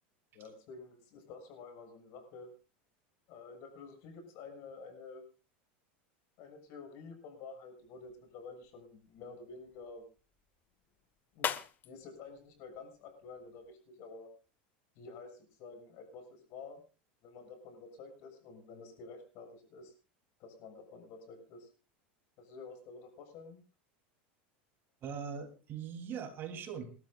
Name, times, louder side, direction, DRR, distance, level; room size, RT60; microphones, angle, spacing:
voice 1, 0.3-2.5 3.3-5.2 6.4-10.0 11.3-11.5 11.8-14.3 14.9-16.8 17.2-19.9 20.4-21.7 22.4-23.6, left 4 dB, 55° left, 5 dB, 6.8 m, -50 dB
sound 1, 7.8-13.7, left 9 dB, 35° left, 1.2 m, -45 dB
voice 2, 25.0-27.0, right 7 dB, 40° right, 6 dB, 3.3 m, -41 dB
28.5 x 12.5 x 2.5 m, 0.33 s
supercardioid pair, 125°, 6 cm